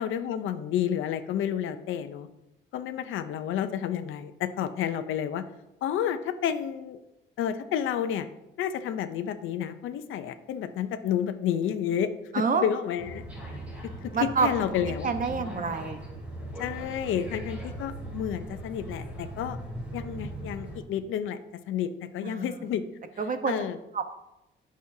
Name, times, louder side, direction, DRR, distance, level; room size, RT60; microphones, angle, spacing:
voice 1, 0.0-2.3 2.7-5.5 5.8-7.0 7.4-8.3 8.6-12.1 12.5-13.2 13.8-15.1 16.6-19.6 19.9-21.4 21.7-22.8 23.5-23.8, left 9 dB, 80° left, 9 dB, 0.7 m, -30 dB
voice 2, 12.3-12.6 14.1-14.5 15.0-16.0 22.2-22.6 23.2-23.5 23.9-24.0, right 5 dB, 45° right, 8 dB, 1.1 m, -27 dB
sound 1, 13.0-20.8, right 1 dB, 5° right, 3.7 m, -39 dB
18.5 x 6.3 x 2.8 m, 0.91 s
cardioid pair, 90°, 20 cm